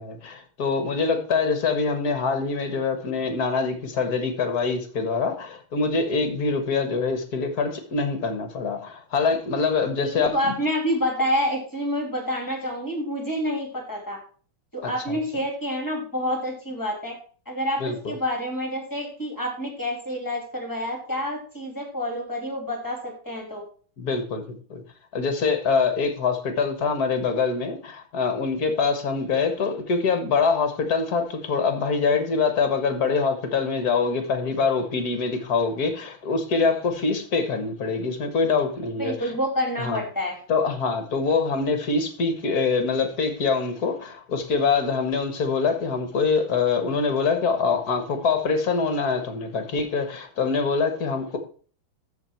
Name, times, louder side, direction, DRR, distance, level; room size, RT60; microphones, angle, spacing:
voice 1, 0.0-10.6 14.8-15.2 17.8-18.1 24.0-24.8 25.1-39.3 39.8-40.0 40.5-51.4, left 4 dB, 50° left, 1.8 m, -24 dB
voice 2, 10.0-14.2 14.7-17.1 17.5-17.8 18.1-23.6 39.0-40.4, equal, 10° left, 3.1 m, -28 dB
13.5 x 4.8 x 4.5 m
omnidirectional pair, 2.3 m